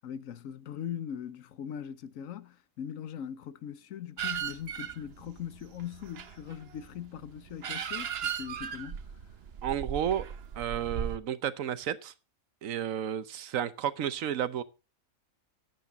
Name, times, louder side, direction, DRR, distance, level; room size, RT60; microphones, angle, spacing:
voice 1, 0.0-9.0, left 9 dB, 80° left, 1.2 m, -40 dB
sound 1, 4.2-11.2, right 8 dB, 55° right, 1.0 m, -38 dB
voice 2, 9.6-10.3 10.6-12.1 12.6-14.6, right 9 dB, 80° right, 1.2 m, -32 dB
12.0 x 8.9 x 4.0 m
omnidirectional pair, 1.4 m